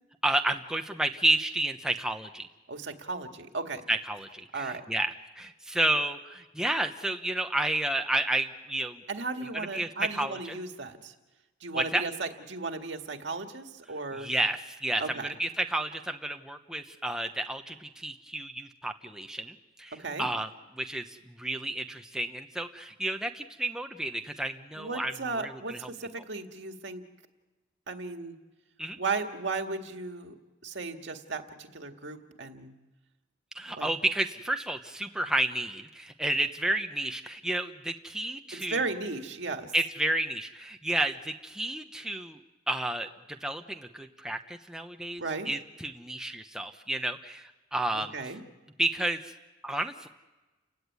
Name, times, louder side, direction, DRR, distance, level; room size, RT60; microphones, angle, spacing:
voice 1, 0.2-2.5 3.9-9.0 9.5-10.6 11.7-12.0 14.1-20.5 20.7-25.9 28.8-29.0 33.5-38.8 39.7-42.4 42.7-48.1 48.8-49.3 49.6-50.1, right 1 dB, 5° right, 5 dB, 0.9 m, -31 dB
voice 2, 2.7-3.8 4.5-4.8 9.1-11.1 11.6-14.3 15.0-15.3 20.0-20.3 24.8-27.0 27.9-28.3 29.0-30.4 30.6-32.7 33.8-33.9 38.5-39.7 45.2-45.5 47.9-48.4, right 3 dB, 70° right, 5 dB, 2.0 m, -35 dB
30.0 x 16.5 x 9.6 m, 1.2 s
head